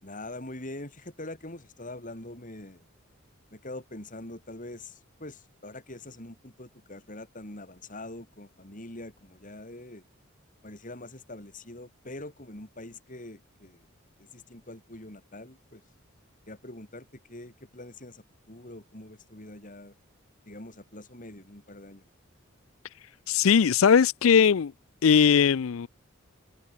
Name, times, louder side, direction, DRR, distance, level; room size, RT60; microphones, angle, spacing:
voice 1, 0.0-2.8 3.5-10.0 10.6-13.9 14.2-15.8 16.5-19.9 20.5-22.0, left 1 dB, 40° left, 4.5 m, -44 dB
voice 2, 23.3-24.7 25.0-25.9, left 7 dB, 75° left, 0.5 m, -20 dB
head